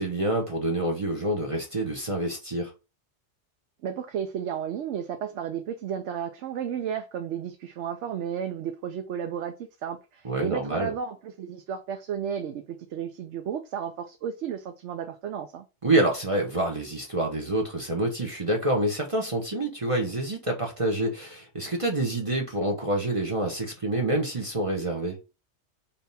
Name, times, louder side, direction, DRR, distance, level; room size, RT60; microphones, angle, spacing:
voice 1, 0.0-2.7 10.2-10.9 15.8-25.2, right 1 dB, 30° right, 0.8 m, -27 dB
voice 2, 3.8-9.6 9.8-15.6, right 8 dB, 80° right, 0.9 m, -33 dB
3.4 x 2.8 x 4.0 m
omnidirectional pair, 1.2 m